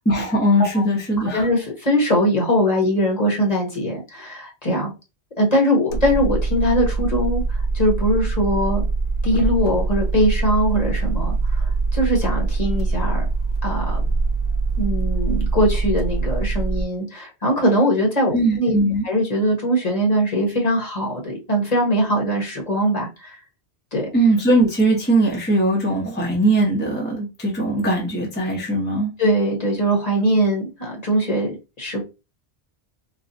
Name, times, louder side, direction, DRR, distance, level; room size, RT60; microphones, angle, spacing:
voice 1, 0.0-1.5 18.3-19.0 24.1-29.1, right 1 dB, 10° left, 0.9 m, -20 dB
voice 2, 1.3-4.9 5.4-8.8 9.2-13.2 13.6-14.0 14.8-18.7 19.0-23.4 23.9-24.1 29.2-32.0, equal, 35° left, 1.2 m, -21 dB
sound 1, 5.9-16.8, right 3 dB, 60° left, 0.7 m, -23 dB
4.2 x 2.3 x 2.6 m
omnidirectional pair, 1.1 m